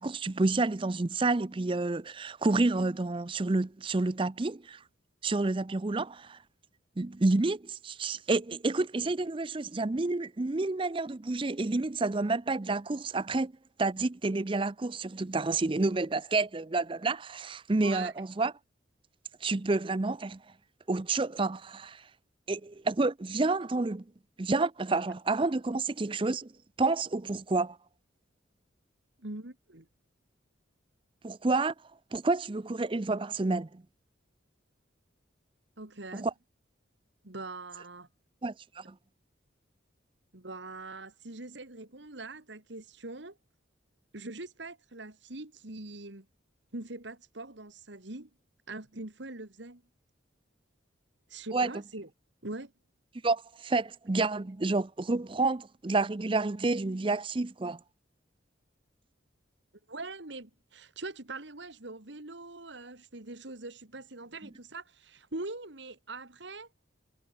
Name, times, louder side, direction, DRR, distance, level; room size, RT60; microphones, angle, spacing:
voice 1, 0.0-4.8 5.2-6.4 7.0-13.5 13.8-18.5 19.4-20.4 20.9-22.0 22.5-24.0 24.4-26.5 26.8-27.8 31.2-31.7 32.1-33.8 36.1-36.3 38.4-38.9 51.5-51.7 53.2-57.8, right 3 dB, 25° right, 0.5 m, -29 dB
voice 2, 17.8-18.1 29.2-29.9 35.8-36.3 37.2-38.1 40.3-43.4 44.1-46.3 46.7-48.3 48.7-49.8 51.3-52.1 52.4-52.7 59.9-66.7, right 2 dB, 65° right, 2.2 m, -42 dB
head